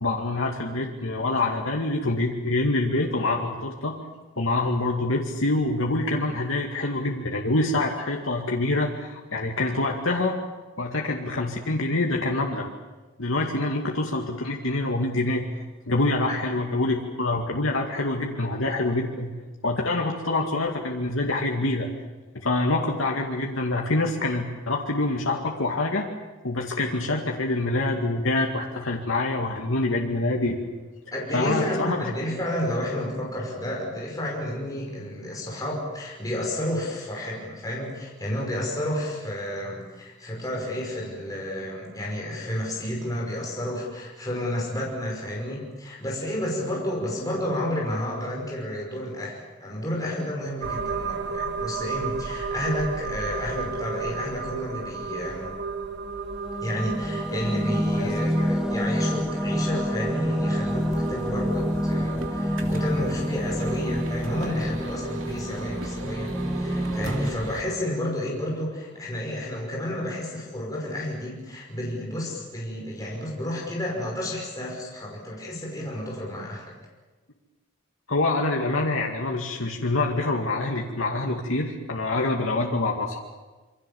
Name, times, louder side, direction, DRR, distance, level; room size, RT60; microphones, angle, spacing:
voice 1, 0.0-4.0 4.4-10.4 10.8-12.7 13.2-19.3 19.6-21.9 22.3-26.1 26.4-30.6 31.3-32.0 57.9-58.1 78.1-83.2, left 2 dB, 85° left, 0 dB, 2.3 m, -26 dB
voice 2, 31.1-55.5 56.6-76.7, left 1 dB, 20° left, -2 dB, 5.6 m, -31 dB
sound 1, 50.6-67.3, right 4 dB, 55° right, 1.7 m, -34 dB
sound 2, 56.1-67.3, equal, 5° right, 0.9 m, -28 dB
sound 3, 60.7-67.6, right 1 dB, 75° right, 2.8 m, -38 dB
27.0 x 24.0 x 7.2 m, 1.2 s
head